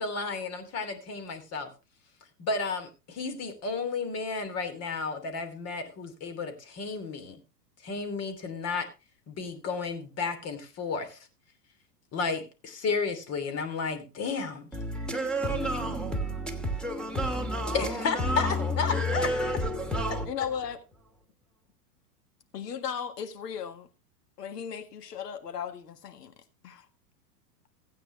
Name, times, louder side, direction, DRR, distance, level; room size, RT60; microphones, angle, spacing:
voice 1, 0.0-1.7 2.4-7.4 7.8-8.9 9.3-11.2 12.1-14.7 17.7-19.3, left 4 dB, 30° left, 2.8 m, -32 dB
voice 2, 14.7-20.3, equal, ahead, 2.6 m, -30 dB
voice 3, 15.4-15.8 20.3-20.8 22.5-23.9 24.4-26.3 26.6-26.9, left 8 dB, 80° left, 1.9 m, -36 dB
15.5 x 9.0 x 3.2 m
hypercardioid pair, 115°, 47 cm